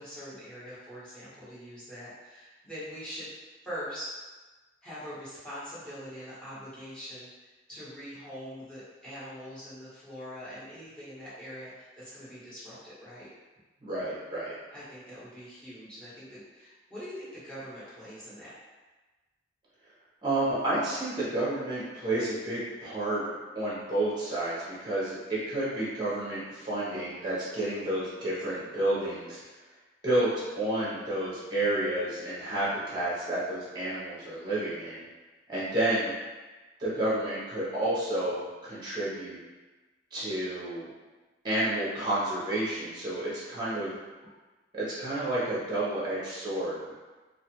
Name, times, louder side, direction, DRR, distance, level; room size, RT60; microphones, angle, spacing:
voice 1, 0.0-3.3 3.6-4.1 4.8-13.3 14.7-18.5, equal, 5° left, -11 dB, 1.1 m, -43 dB
voice 2, 13.8-14.5 20.2-29.4 30.0-35.0 35.5-36.1 36.8-39.4 40.1-40.9 41.4-43.9 44.7-46.9, right 1 dB, 25° right, -8 dB, 0.7 m, -30 dB
2.4 x 2.4 x 2.8 m, 1.2 s
head